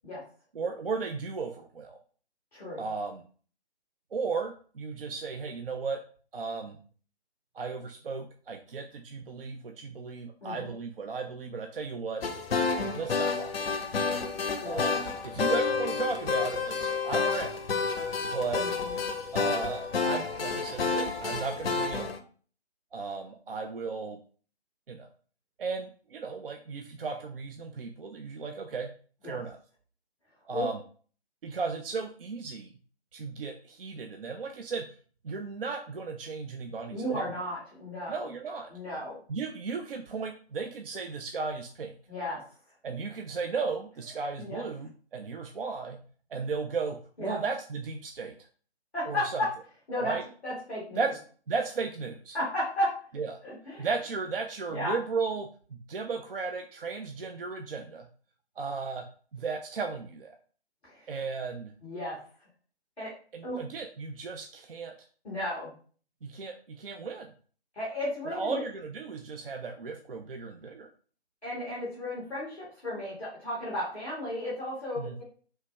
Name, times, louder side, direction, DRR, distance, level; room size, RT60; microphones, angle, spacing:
voice 1, 0.6-2.0 2.8-3.2 4.1-6.0 6.3-6.8 7.5-12.2 12.9-13.8 14.7-15.0 15.2-17.6 18.3-18.6 19.3-22.1 22.9-24.2 24.9-25.1 25.6-28.9 29.2-29.6 30.5-30.8 31.4-32.7 33.1-34.8 35.2-37.2 38.1-38.7 39.3-41.9 42.8-46.0 46.3-48.3 49.1-49.4 50.0-50.2 51.0-51.1 51.5-52.4 53.2-53.4 53.8-58.1 58.6-59.1 59.3-60.3 61.1-61.7 63.3-64.9 66.2-67.3 68.3-70.9 75.0-75.1, right 4 dB, 60° right, 4 dB, 0.5 m, -35 dB
voice 2, 2.5-2.8 10.4-10.8 14.6-14.9 18.5-19.0 29.2-29.4 30.5-30.7 36.9-38.3 38.7-39.2 42.1-42.4 44.4-44.6 47.2-47.4 48.9-49.5 49.9-50.2 50.4-51.1 52.3-52.9 53.4-53.9 54.7-54.9 60.8-61.1 61.8-62.2 63.0-63.1 63.4-63.6 65.2-65.7 67.7-68.6 71.4-75.2, left 1 dB, ahead, -22 dB, 0.5 m, -34 dB
sound 1, 12.2-22.2, left 5 dB, 65° left, 0.5 m, -30 dB
3.2 x 2.3 x 3.2 m, 0.42 s
figure-of-eight pair, 145°, 32 cm